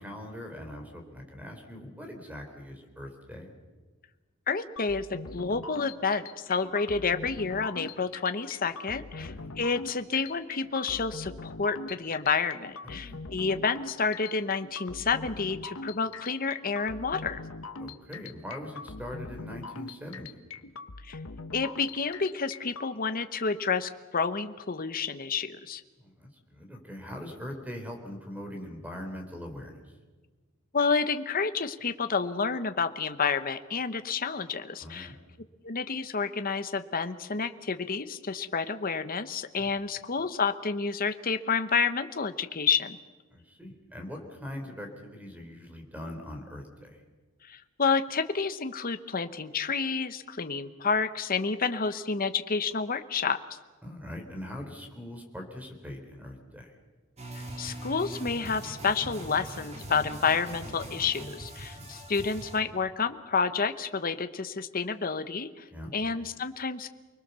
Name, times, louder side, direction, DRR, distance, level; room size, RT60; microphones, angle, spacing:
voice 1, 0.0-3.5 9.2-9.5 12.8-13.2 17.8-20.4 26.0-29.8 34.8-35.2 39.6-39.8 43.3-47.0 53.8-56.7 61.7-61.9 65.7-66.0, left 1 dB, 5° right, 3 dB, 3.9 m, -42 dB
voice 2, 4.5-17.4 21.0-21.2 21.5-25.8 30.7-35.1 35.6-43.0 47.4-53.6 57.3-65.6 65.9-66.9, left 5 dB, 40° left, 10 dB, 1.0 m, -29 dB
sound 1, 4.8-22.9, left 3 dB, 70° left, 1.2 m, -42 dB
sound 2, 57.2-62.6, right 1 dB, 30° right, 3.4 m, -41 dB
29.0 x 20.5 x 6.9 m, 1.3 s
head